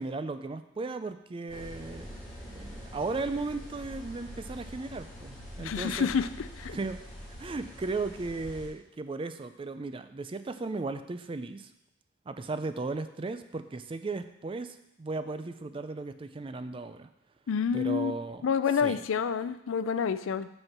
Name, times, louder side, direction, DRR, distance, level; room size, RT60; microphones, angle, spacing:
voice 1, 0.0-2.2 2.4-6.1 6.7-7.0 7.4-11.7 12.3-17.1 17.7-18.5 18.8-19.0, right 3 dB, 25° right, 10 dB, 0.4 m, -36 dB
sound 1, 1.5-8.7, equal, ahead, 2.6 m, -45 dB
voice 2, 5.6-6.3 6.6-6.8 17.5-18.1 18.4-20.5, left 6 dB, 85° left, 13 dB, 0.4 m, -28 dB
6.4 x 4.5 x 5.9 m, 0.83 s
head